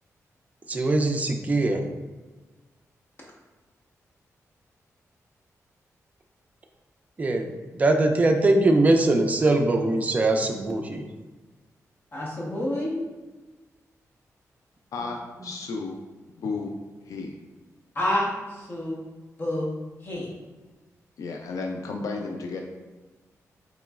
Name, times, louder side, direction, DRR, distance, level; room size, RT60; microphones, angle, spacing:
voice 1, 0.7-1.8 7.2-11.0 15.4-15.5, right 2 dB, 25° right, 4 dB, 0.3 m, -22 dB
voice 2, 12.1-12.9 17.9-19.0 19.4-19.7 20.0-20.3, left 1 dB, 40° left, -4 dB, 1.0 m, -28 dB
voice 3, 14.9-16.0 16.4-16.7 17.1-17.3 21.2-22.6, left 4 dB, 75° left, 2 dB, 0.3 m, -33 dB
3.8 x 3.0 x 2.3 m, 1.2 s
wide cardioid pair, 120°, 6 cm